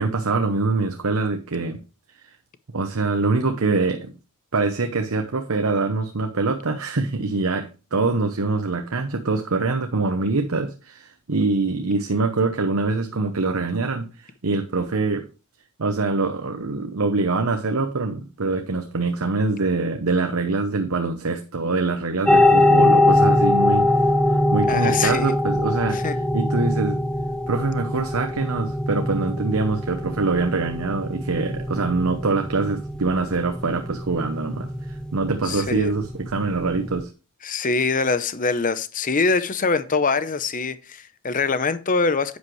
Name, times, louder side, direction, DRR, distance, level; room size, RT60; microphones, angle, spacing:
voice 1, 0.0-1.8 2.2-2.3 2.7-4.1 4.5-15.3 15.8-23.9 24.5-26.0 26.3-27.0 27.5-37.1, right 3 dB, 70° right, 0.9 m, -24 dB
sound 1, 22.3-37.0, left 1 dB, 5° left, 0.5 m, -22 dB
voice 2, 24.7-25.4 25.9-26.2 35.4-35.9 37.4-42.4, left 4 dB, 35° left, 0.7 m, -23 dB
9.9 x 8.3 x 3.1 m
head